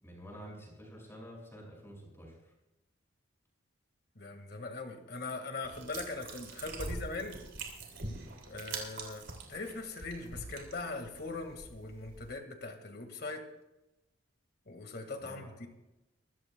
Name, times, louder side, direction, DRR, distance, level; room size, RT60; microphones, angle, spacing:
voice 1, 0.0-2.4 6.8-6.9 15.2-15.5, equal, 15° left, -2 dB, 5.7 m, -49 dB
voice 2, 4.2-7.4 8.5-13.5 14.7-15.7, left 3 dB, 55° left, 6 dB, 1.7 m, -41 dB
sound 1, 5.6-12.3, right 3 dB, 65° right, 3.4 m, -44 dB
24.0 x 14.5 x 2.2 m, 0.99 s
head